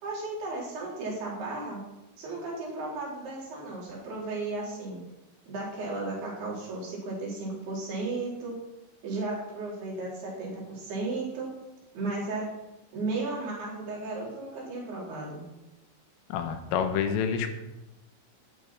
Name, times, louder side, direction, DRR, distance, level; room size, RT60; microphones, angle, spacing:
voice 1, 0.0-1.8 2.2-5.0 5.5-8.6 9.0-11.5 11.9-12.5 12.9-15.4, right 3 dB, 55° right, -4 dB, 5.5 m, -34 dB
voice 2, 16.3-17.5, left 7 dB, 85° left, 7 dB, 3.9 m, -28 dB
12.5 x 11.5 x 6.0 m, 1.0 s
omnidirectional pair, 5.7 m